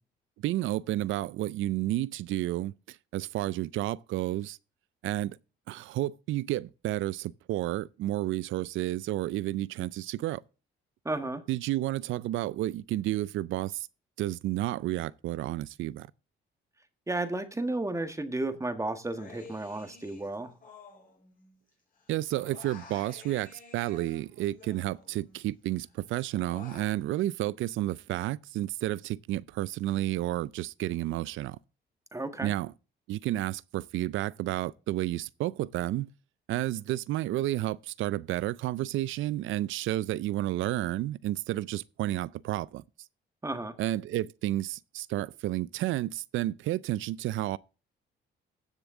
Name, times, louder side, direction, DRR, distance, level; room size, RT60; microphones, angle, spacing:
voice 1, 0.4-4.6 5.0-5.4 5.7-10.4 11.5-13.9 14.2-16.1 22.1-31.6 32.4-32.7 33.1-36.1 36.5-42.8 43.8-47.6, right 15 dB, 80° right, 0.4 m, -31 dB
voice 2, 11.0-11.4 17.1-20.5 32.1-32.5 43.4-43.7, right 2 dB, 15° right, 1.5 m, -33 dB
Human voice, 19.0-21.7 22.0-25.5 25.8-26.9, left 4 dB, 45° left, 4.7 m, -52 dB
15.5 x 6.9 x 3.7 m
cardioid pair, 90°, 20 cm